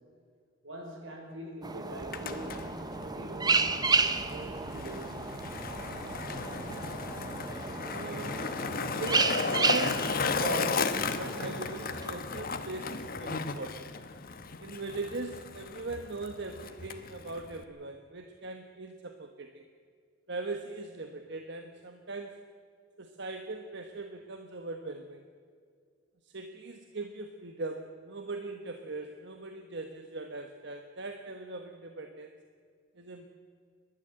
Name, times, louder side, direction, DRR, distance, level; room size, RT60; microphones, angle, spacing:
voice 1, 0.6-5.3, right 1 dB, 85° right, 1 dB, 5.8 m, -43 dB
sound 1, 1.6-12.6, right 4 dB, 20° right, 1.0 m, -33 dB
Skateboard, 1.9-17.6, left 4 dB, 50° left, 1.2 m, -35 dB
sound 2, 2.0-7.3, right 2 dB, 45° right, 0.7 m, -50 dB
voice 2, 7.9-13.9 14.6-19.7 20.3-22.4 23.0-25.2 26.2-32.3 32.9-33.3, right 3 dB, 65° right, 5 dB, 1.3 m, -40 dB
30.0 x 12.0 x 7.8 m, 2.1 s
head